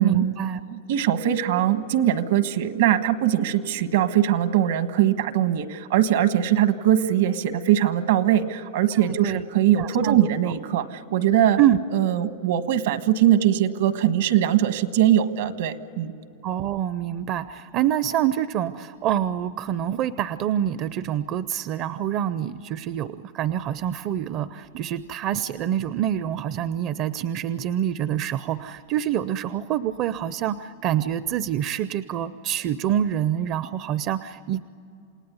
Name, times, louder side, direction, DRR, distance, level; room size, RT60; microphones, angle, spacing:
voice 1, 0.0-0.6 9.2-9.4 9.8-10.2 10.5-10.6 11.6-11.8 16.4-34.7, right 10 dB, 40° right, 14 dB, 0.5 m, -26 dB
voice 2, 0.7-11.6 11.9-16.1, right 11 dB, 75° right, 10 dB, 1.4 m, -21 dB
28.5 x 18.5 x 9.5 m, 2.7 s
supercardioid pair, 150°, 0 cm